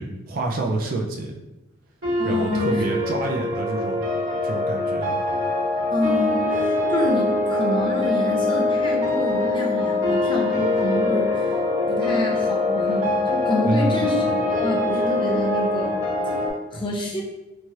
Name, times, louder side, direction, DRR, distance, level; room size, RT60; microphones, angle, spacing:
voice 1, 0.0-1.4 2.2-4.0 4.4-5.2 13.6-14.2, right 2 dB, 45° right, 0 dB, 0.4 m, -27 dB
sound 1, 2.0-16.5, left 2 dB, 65° right, 1.4 m, -23 dB
voice 2, 2.2-2.8 5.9-11.6 11.9-16.0 16.7-17.2, left 1 dB, 25° left, -1 dB, 0.5 m, -27 dB
3.1 x 2.3 x 2.7 m, 1.0 s
head